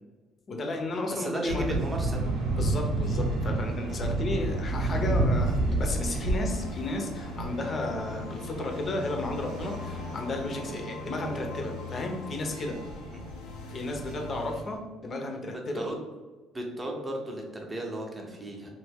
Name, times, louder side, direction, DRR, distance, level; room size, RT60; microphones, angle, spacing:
voice 1, 0.5-1.6 2.6-12.8 13.7-15.8, left 2 dB, 35° left, 2 dB, 0.6 m, -33 dB
voice 2, 1.1-2.2 13.1-13.3 15.5-16.0 16.5-18.7, equal, 15° right, 0 dB, 0.6 m, -34 dB
sound 1, 1.5-14.8, right 2 dB, 90° right, 0.9 m, -31 dB
sound 2, 6.2-14.6, left 7 dB, 85° left, 0.4 m, -43 dB
3.0 x 2.6 x 3.5 m, 1.3 s
cardioid pair, 145°, 0 cm